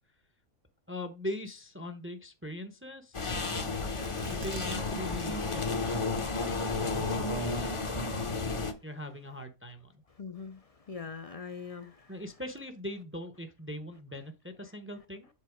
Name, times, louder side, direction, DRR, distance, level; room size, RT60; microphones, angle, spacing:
voice 1, 0.9-3.3 4.3-5.9 6.8-8.4 8.8-10.0 11.0-11.1 12.1-15.3, left 1 dB, 15° right, 0.6 m, -41 dB
sound 1, 3.1-8.7, left 3 dB, 30° left, 0.6 m, -32 dB
sound 2, 4.0-4.9 5.2-5.3 5.9-6.3 6.9-7.0, right 10 dB, 85° right, 1.1 m, -46 dB
voice 2, 10.1-12.2, left 5 dB, 65° left, 0.3 m, -42 dB
7.5 x 4.1 x 4.9 m
omnidirectional pair, 1.4 m